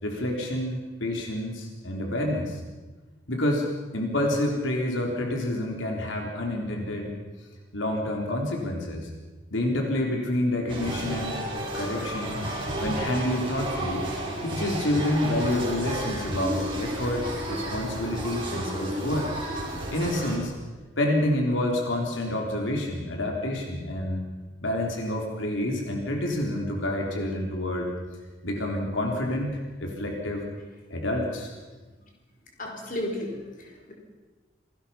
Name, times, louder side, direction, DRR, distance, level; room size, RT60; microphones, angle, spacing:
voice 1, 0.0-2.6 3.3-3.7 3.9-7.1 7.7-9.1 9.5-11.4 11.7-12.4 12.8-14.0 14.4-19.3 19.9-20.5 21.0-24.2 24.6-27.9 28.4-30.4 30.9-31.5, left 1 dB, 80° left, 1 dB, 3.7 m, -28 dB
sound 1, 10.7-20.4, right 1 dB, 25° right, 5.5 m, -32 dB
voice 2, 32.6-33.9, left 1 dB, 45° left, 0 dB, 4.8 m, -34 dB
27.5 x 19.5 x 5.8 m, 1.3 s
head